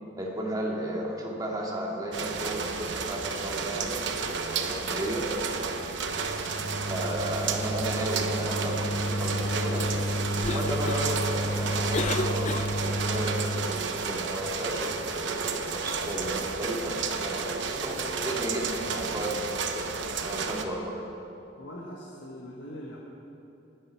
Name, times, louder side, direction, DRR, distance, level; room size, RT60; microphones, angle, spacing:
voice 1, 0.2-4.0 4.7-5.3 6.8-9.9 10.5-19.9 20.2-21.1, right 1 dB, 20° right, -2 dB, 2.1 m, -34 dB
sound 1, 2.1-20.6, right 4 dB, 75° right, 0.9 m, -32 dB
sound 2, 6.1-13.8, equal, 60° left, 1.0 m, -31 dB
Cough, 10.2-13.1, left 3 dB, 40° left, 0.5 m, -34 dB
voice 2, 21.6-23.0, equal, 85° left, -2 dB, 1.5 m, -41 dB
19.0 x 10.5 x 4.6 m, 2.9 s
head